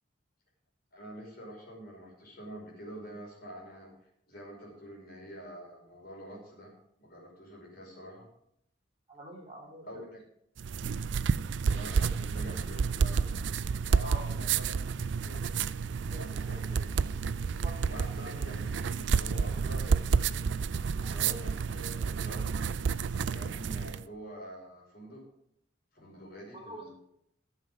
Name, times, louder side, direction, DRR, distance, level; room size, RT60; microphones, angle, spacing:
voice 1, 0.9-3.9 4.3-6.7 7.0-8.3 9.8-10.2 11.7-13.6 13.9-15.4 16.1-16.8 17.9-20.5 21.0-22.6 23.1-25.2 26.0-27.0, right 1 dB, 50° left, -1 dB, 5.3 m, -46 dB
voice 2, 9.1-9.9 14.0-14.2 16.1-16.3 17.6-17.8 21.0-21.1 26.0-26.1 26.5-26.9, right 2 dB, 30° right, -1 dB, 2.6 m, -45 dB
sound 1, 10.6-24.0, right 5 dB, 70° right, 0.4 m, -30 dB
14.0 x 7.3 x 5.4 m, 0.72 s
head